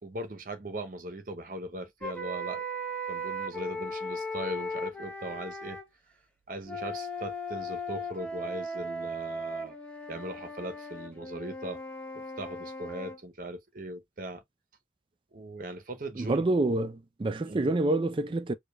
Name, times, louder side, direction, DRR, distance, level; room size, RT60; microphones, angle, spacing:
voice 1, 0.0-2.6 3.1-5.8 6.5-9.8 10.1-11.8 12.1-14.4 15.3-16.4 17.5-17.7, right 1 dB, 45° right, 0.8 m, -39 dB
sound 1, 2.0-5.9 6.6-13.2, equal, 5° left, 0.7 m, -37 dB
voice 2, 16.2-18.5, right 2 dB, 25° right, 0.3 m, -27 dB
4.9 x 2.3 x 2.3 m
head